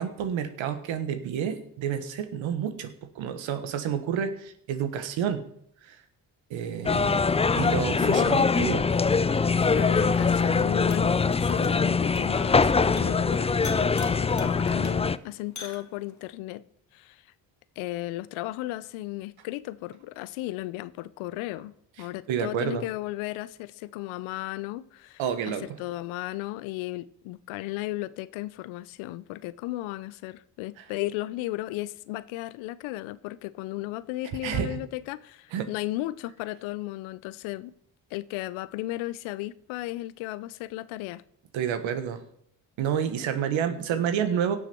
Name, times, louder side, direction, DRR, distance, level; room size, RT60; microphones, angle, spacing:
voice 1, 0.0-5.4 5.8-6.0 6.5-7.2 7.6-8.9 22.0-22.8 25.2-25.6 30.8-30.9 34.4-34.8 35.5-35.7 41.5-42.2 42.8-44.6, right 8 dB, 75° right, 1.4 m, -29 dB
sound 1, 6.8-15.2, left 4 dB, 15° left, 0.4 m, -23 dB
voice 2, 8.0-8.4 9.6-11.1 11.4-16.6 16.9-17.2 17.8-25.2 25.5-37.7 38.1-41.2, left 17 dB, 80° left, 0.7 m, -35 dB
sound 2, 8.3-16.3, left 4 dB, 35° left, 1.8 m, -45 dB
17.5 x 6.6 x 4.5 m
hypercardioid pair, 50°, 47 cm